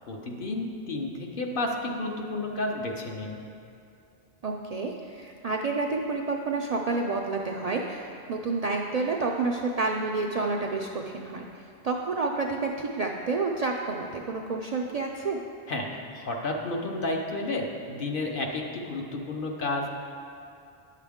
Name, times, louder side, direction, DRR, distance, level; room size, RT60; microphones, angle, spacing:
voice 1, 0.1-3.4 15.7-19.9, left 2 dB, 55° left, 1 dB, 0.9 m, -31 dB
voice 2, 4.4-11.5 11.8-15.4, right 3 dB, 55° right, 0 dB, 0.4 m, -29 dB
10.0 x 6.6 x 3.5 m, 2.5 s
omnidirectional pair, 1.1 m